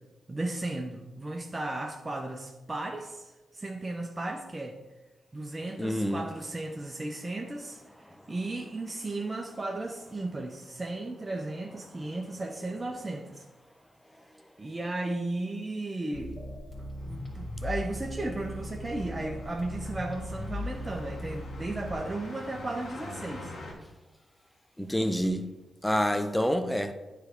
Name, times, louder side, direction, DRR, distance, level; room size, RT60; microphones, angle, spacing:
voice 1, 0.3-4.8 5.3-13.5 14.6-16.4 17.0-23.5, right 2 dB, 30° right, 0.7 m, -35 dB
voice 2, 5.8-6.2 24.8-25.5 25.8-26.9, equal, 5° left, 0.7 m, -27 dB
sound 1, 16.1-21.9, left 1 dB, 35° left, 2.3 m, -38 dB
sound 2, 17.0-23.7, left 2 dB, 65° left, 1.5 m, -46 dB
9.3 x 3.4 x 4.6 m
supercardioid pair, 45°, 0 cm